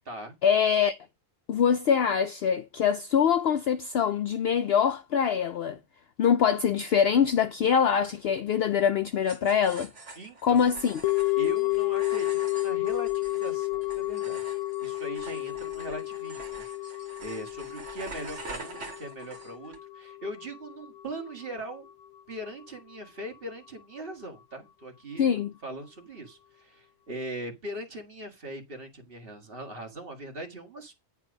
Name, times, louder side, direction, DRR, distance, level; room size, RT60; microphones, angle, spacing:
voice 1, 0.4-1.0 1.5-5.8 6.2-9.9 10.4-11.0 25.2-25.5, left 7 dB, 60° left, 0.7 m, -24 dB
sound 1, 9.2-19.8, right 3 dB, 65° right, 2.1 m, -46 dB
voice 2, 10.2-10.7 11.4-14.6 14.8-21.9 22.3-25.3 25.6-30.9, right 1 dB, 45° right, 2.1 m, -40 dB
sound 2, 11.0-21.3 21.6-21.7, left 20 dB, 90° left, 1.1 m, -31 dB
9.8 x 4.4 x 5.2 m
omnidirectional pair, 1.3 m